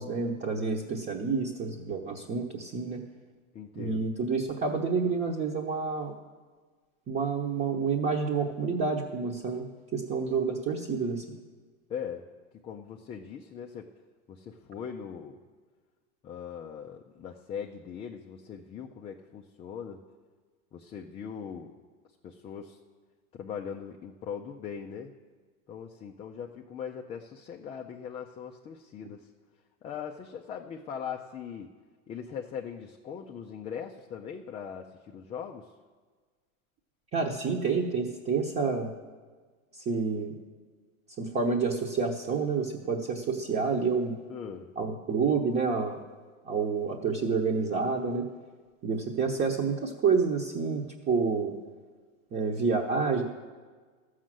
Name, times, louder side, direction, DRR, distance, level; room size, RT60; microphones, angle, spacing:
voice 1, 0.0-3.0 3.7-6.2 7.1-9.7 9.9-11.2 37.1-38.9 39.7-40.3 41.2-44.1 44.8-46.0 46.4-48.3 48.8-51.5 52.3-53.2, right 5 dB, 25° right, 0 dB, 1.0 m, -28 dB
voice 2, 3.5-4.1 11.9-12.2 12.6-13.9 14.3-15.4 16.2-20.0 20.7-21.7 22.2-22.8 23.3-25.1 25.7-29.3 29.8-31.7 32.1-35.7 44.3-44.7, left 7 dB, 15° left, 1 dB, 0.3 m, -40 dB
13.5 x 6.4 x 7.6 m, 1.5 s
supercardioid pair, 125°, 42 cm